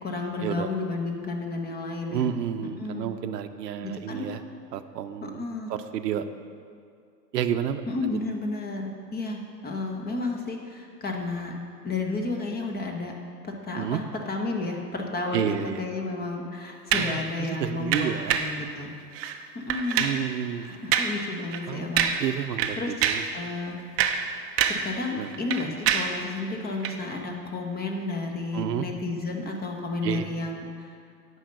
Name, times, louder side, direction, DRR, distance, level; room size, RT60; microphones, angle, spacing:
voice 1, 0.0-2.3 2.8-3.1 3.8-4.3 5.2-5.7 7.9-11.5 11.8-13.1 13.6-18.9 19.5-20.1 20.6-22.1 22.8-23.1 23.3-23.8 24.7-30.9, left 3 dB, 20° left, 2 dB, 1.2 m, -32 dB
voice 2, 2.1-4.4 4.7-5.4 5.7-6.3 7.3-8.1 13.7-14.0 15.3-15.8 16.9-18.4 19.9-20.7 21.7-21.9 22.2-23.2 25.1-25.3 28.5-28.9 30.0-30.3, right 9 dB, 75° right, 9 dB, 0.7 m, -30 dB
sound 1, 16.9-17.2 17.9-18.6 19.1-19.4 19.7-20.2 20.9-21.2 21.5-21.7 22.0-22.3 22.6-23.3 23.8-24.9 25.2-26.2 26.8-27.0, right 8 dB, 30° right, 0.5 m, -26 dB
9.1 x 5.6 x 6.6 m, 2.3 s
hypercardioid pair, 100°, 49 cm